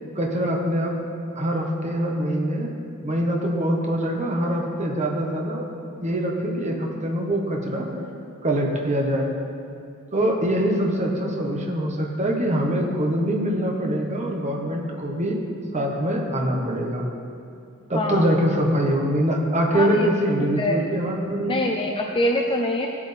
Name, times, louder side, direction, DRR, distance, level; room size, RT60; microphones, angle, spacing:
voice 1, 0.1-1.0 1.3-2.7 3.0-5.7 6.0-7.9 8.4-9.3 10.1-15.4 15.7-17.1 17.9-21.7, equal, 30° right, 0 dB, 1.2 m, -24 dB
voice 2, 21.5-22.9, left 1 dB, 25° left, 1 dB, 0.5 m, -24 dB
16.5 x 8.4 x 3.4 m, 2.4 s
head